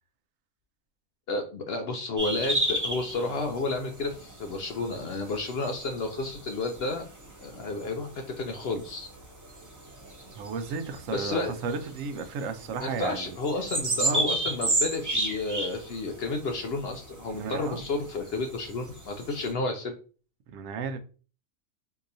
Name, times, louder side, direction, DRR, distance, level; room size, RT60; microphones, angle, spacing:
voice 1, 1.3-7.1 7.4-9.1 11.1-11.5 12.8-19.9, left 3 dB, 65° left, 0.6 m, -31 dB
sound 1, 2.2-19.5, right 1 dB, 25° right, 0.4 m, -34 dB
voice 2, 10.4-13.4 14.0-14.2 17.3-17.8 20.5-21.0, right 5 dB, 75° right, 0.9 m, -34 dB
3.8 x 2.8 x 2.6 m
omnidirectional pair, 1.4 m